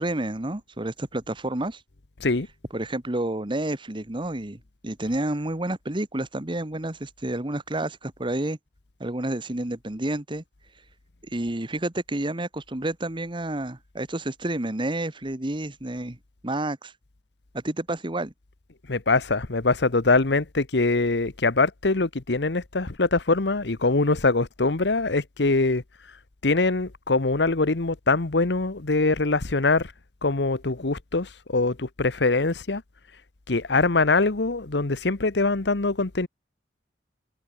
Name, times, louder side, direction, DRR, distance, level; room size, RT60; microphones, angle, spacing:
voice 1, 0.0-1.8 2.7-8.6 9.0-10.4 11.3-16.2 16.4-16.9 17.5-18.3, right 1 dB, 30° right, 1.5 m, -30 dB
voice 2, 18.9-25.8 26.4-29.9 30.2-32.8 33.5-36.3, left 3 dB, 80° left, 1.2 m, -23 dB
head